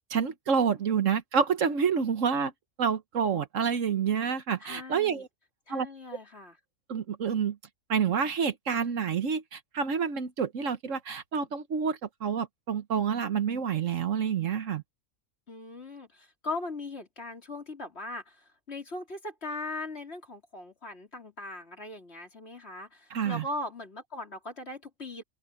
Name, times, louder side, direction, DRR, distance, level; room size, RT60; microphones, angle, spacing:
voice 1, 0.1-2.5 2.8-5.3 5.7-5.9 6.9-7.6 7.9-14.8 23.1-23.4, right 6 dB, 65° right, 1.4 m, -28 dB
voice 2, 4.6-5.2 5.7-6.6 15.5-25.2, left 2 dB, 45° left, 3.9 m, -39 dB
open air
omnidirectional pair, 1.5 m